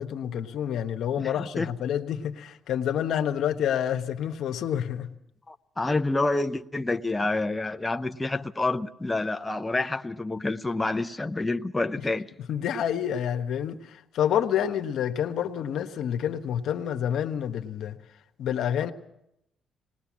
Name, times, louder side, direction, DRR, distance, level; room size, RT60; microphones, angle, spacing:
voice 1, 0.0-5.1 12.5-18.0 18.4-18.9, left 9 dB, 75° left, 1.2 m, -28 dB
voice 2, 1.2-1.7 5.5-12.3, left 2 dB, 15° left, 0.7 m, -28 dB
20.0 x 19.5 x 7.4 m
cardioid pair, 90°, 0 cm